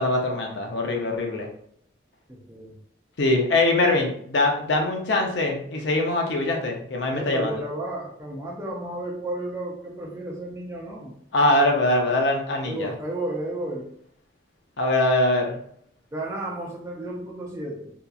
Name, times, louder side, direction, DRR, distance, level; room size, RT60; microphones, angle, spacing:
voice 1, 0.0-1.5 3.2-7.5 11.3-12.9 14.8-15.6, left 2 dB, 70° left, 2 dB, 0.5 m, -22 dB
voice 2, 2.3-2.8 7.1-11.1 12.7-13.9 16.1-17.9, right 1 dB, 15° right, -1 dB, 0.4 m, -33 dB
2.7 x 2.3 x 2.3 m, 0.65 s
head